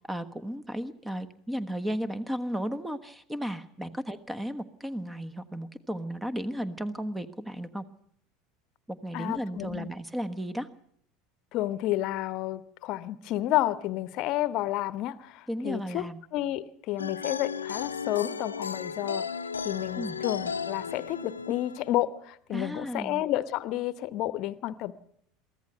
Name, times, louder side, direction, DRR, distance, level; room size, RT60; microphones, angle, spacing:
voice 1, 0.0-7.8 8.9-10.7 15.5-16.2 20.0-20.2 22.5-23.2, equal, 10° right, 12 dB, 1.3 m, -34 dB
voice 2, 9.1-9.9 11.5-16.0 16.3-19.2 19.6-24.9, left 14 dB, 50° left, 16 dB, 1.0 m, -30 dB
sound 1, 17.0-22.0, left 6 dB, 80° left, 0.8 m, -35 dB
23.5 x 15.0 x 7.9 m, 0.69 s
figure-of-eight pair, 75°, 0 cm